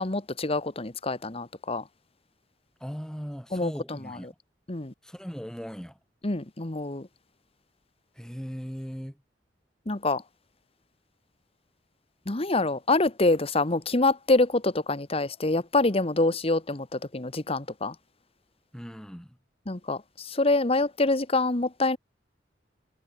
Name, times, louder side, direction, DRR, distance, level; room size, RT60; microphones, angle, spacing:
voice 1, 0.0-1.8 3.5-3.7 4.7-4.9 6.2-7.1 9.9-10.2 12.3-17.9 19.7-20.0 20.3-22.0, left 2 dB, 35° left, 1.4 m, -26 dB
voice 2, 2.8-4.3 5.0-6.0 8.1-9.2 18.7-19.4, equal, 5° left, 6.3 m, -38 dB
head